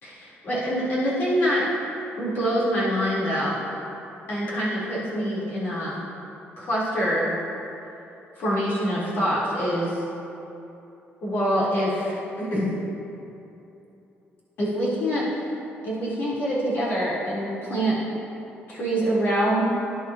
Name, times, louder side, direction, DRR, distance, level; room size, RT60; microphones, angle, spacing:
voice 1, 0.0-1.7 2.2-3.6 4.3-6.0 6.6-7.3 8.4-10.0 11.2-12.7 14.6-15.2 15.8-18.0 18.7-19.6, equal, 60° left, -9 dB, 3.6 m, -25 dB
22.5 x 11.5 x 2.9 m, 2.9 s
cardioid pair, 165°, 4 cm